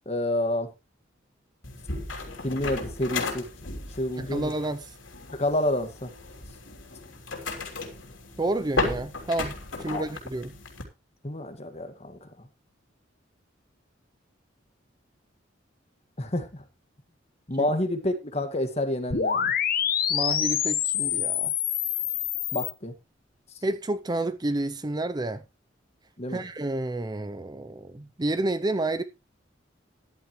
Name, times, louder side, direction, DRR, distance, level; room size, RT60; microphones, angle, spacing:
voice 1, 0.1-0.7 2.4-3.5 3.9-4.5 5.3-6.1 9.9-10.0 11.2-12.5 16.2-16.6 17.5-19.5 22.5-22.9 26.2-26.4, left 1 dB, 35° left, 1.8 m, -29 dB
sound 1, 1.6-10.8, left 3 dB, 90° left, 3.2 m, -35 dB
voice 2, 4.2-5.0 8.4-10.6 17.6-17.7 20.1-21.5 23.6-25.4 26.3-29.0, right 2 dB, 20° right, 0.6 m, -30 dB
sound 2, 19.1-22.7, left 9 dB, 50° left, 1.2 m, -26 dB
13.5 x 11.0 x 3.1 m
head